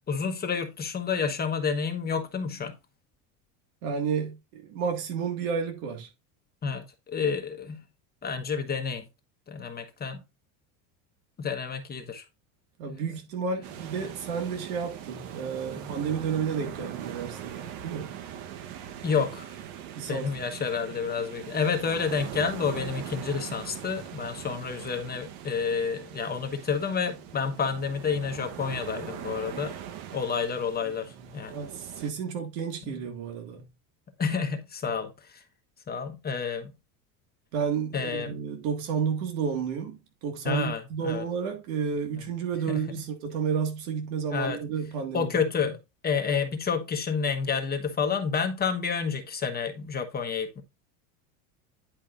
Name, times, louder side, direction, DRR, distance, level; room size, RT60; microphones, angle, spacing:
voice 1, 0.1-2.7 6.6-7.8 8.2-9.0 9.5-10.2 11.4-12.2 12.9-13.2 15.8-15.9 19.0-19.6 20.1-29.8 30.1-31.6 32.8-33.0 34.2-35.4 35.9-36.7 37.9-38.4 40.4-41.2 42.7-42.8 44.3-44.6 45.1-45.8 46.0-50.6, left 6 dB, 25° left, 1.2 m, -29 dB
voice 2, 3.8-6.1 12.8-18.1 19.9-20.3 30.8-30.9 31.2-33.7 37.5-45.4, right 6 dB, 90° right, 2.0 m, -31 dB
sound 1, 13.6-32.1, right 10 dB, 70° right, 1.2 m, -41 dB
10.5 x 5.4 x 2.5 m
cardioid pair, 140°, 40 cm